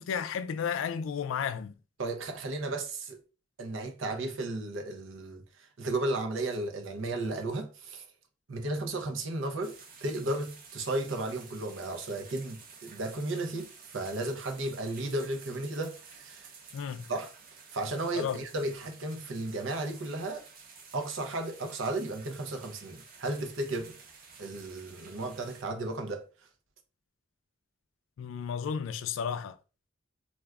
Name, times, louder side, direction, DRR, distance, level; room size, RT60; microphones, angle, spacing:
voice 1, 0.0-1.7 16.7-17.0 18.2-18.4 28.2-29.6, left 7 dB, 75° left, 0.3 m, -33 dB
voice 2, 2.0-3.2 3.6-8.1 8.5-16.5 17.1-17.3 17.7-20.4 20.9-24.0 24.4-26.3, right 2 dB, 80° right, 0.7 m, -34 dB
sound 1, 9.6-25.6, right 5 dB, 50° right, 0.7 m, -52 dB
2.4 x 2.3 x 3.3 m
head